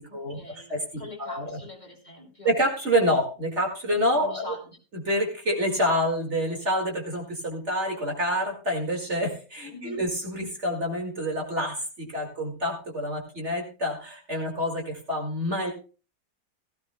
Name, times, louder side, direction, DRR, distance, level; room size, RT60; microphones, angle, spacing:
voice 1, 0.1-2.5 4.2-4.6 9.7-10.0, left 2 dB, 25° left, -1 dB, 3.0 m, -42 dB
voice 2, 0.7-1.6 2.4-4.5 5.1-15.7, equal, 45° right, 1 dB, 2.4 m, -27 dB
16.5 x 14.5 x 2.2 m, 0.36 s
omnidirectional pair, 1.7 m